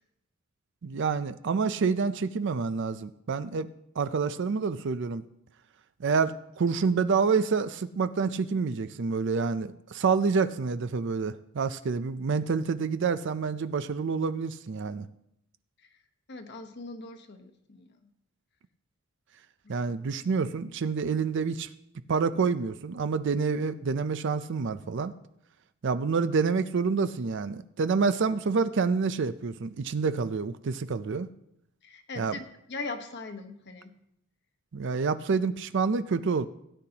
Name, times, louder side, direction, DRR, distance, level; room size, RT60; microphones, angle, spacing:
voice 1, 0.8-3.7 4.0-5.2 6.0-15.1 19.7-21.7 22.1-25.1 25.8-31.3 32.2-32.3 34.7-36.5, right 5 dB, 60° right, 12 dB, 0.5 m, -28 dB
voice 2, 16.3-18.0 19.6-19.7 31.8-33.9, left 3 dB, 55° left, 7 dB, 1.1 m, -40 dB
17.0 x 9.9 x 2.9 m, 0.77 s
head